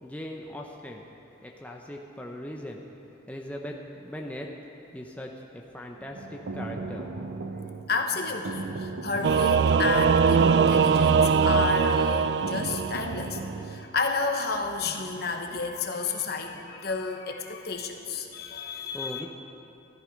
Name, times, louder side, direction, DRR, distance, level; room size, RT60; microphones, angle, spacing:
voice 1, 0.0-1.0 1.4-2.9 3.3-4.5 4.9-7.1 18.9-19.3, left 1 dB, 5° left, 0 dB, 0.7 m, -39 dB
sound 1, 6.0-13.8, right 3 dB, 85° right, 0.8 m, -37 dB
voice 2, 7.9-19.3, left 4 dB, 55° left, 3 dB, 1.1 m, -31 dB
Singing / Musical instrument, 9.2-13.3, right 6 dB, 60° right, 0.3 m, -22 dB
13.5 x 13.0 x 5.2 m, 2.8 s
head